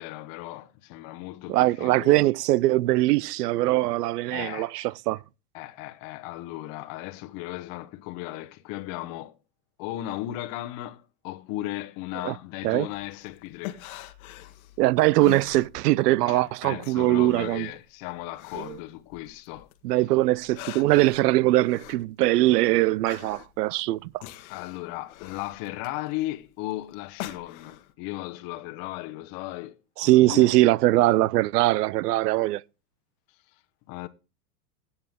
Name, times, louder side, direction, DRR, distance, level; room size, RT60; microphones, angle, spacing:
voice 1, 0.0-2.2 4.3-4.9 5.5-9.4 9.8-13.8 16.2-19.7 24.5-29.8 30.0-30.5 33.9-34.1, left 16 dB, 45° left, 1.0 m, -36 dB
voice 2, 1.5-5.2 12.2-12.3 12.6-12.9 14.8-17.7 18.6-18.8 19.8-24.2 30.0-32.6, right 17 dB, 90° right, 0.5 m, -22 dB
sound 1, 12.9-16.2 16.5-19.8 20.2-27.9, left 14 dB, 65° left, 1.3 m, -43 dB
16.0 x 7.1 x 3.5 m
supercardioid pair, 130°, 46 cm